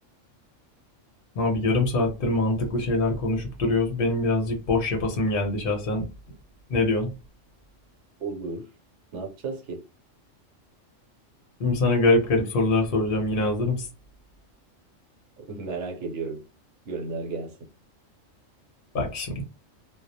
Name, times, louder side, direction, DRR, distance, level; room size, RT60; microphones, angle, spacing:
voice 1, 1.4-6.0 6.7-7.1 11.6-13.9 18.9-19.4, left 2 dB, 55° left, 0.7 m, -24 dB
voice 2, 8.2-8.7 9.1-9.8 15.4-16.4 16.9-17.7, right 4 dB, 70° right, 1.0 m, -33 dB
2.3 x 2.0 x 2.7 m
omnidirectional pair, 1.3 m